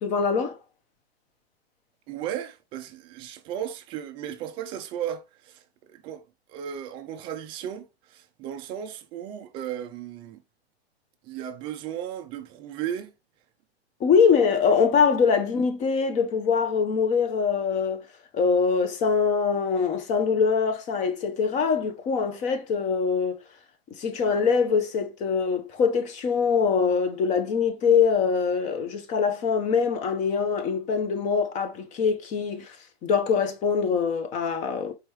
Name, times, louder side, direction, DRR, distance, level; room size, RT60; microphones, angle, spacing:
voice 1, 0.0-0.6 14.0-18.0 18.3-23.4 23.9-32.8 33.0-34.9, left 6 dB, 25° left, 0.6 m, -23 dB
voice 2, 2.1-6.2 6.5-10.4 11.2-13.1, right 10 dB, 15° right, 0.3 m, -35 dB
4.7 x 3.0 x 3.1 m
hypercardioid pair, 130°, 32 cm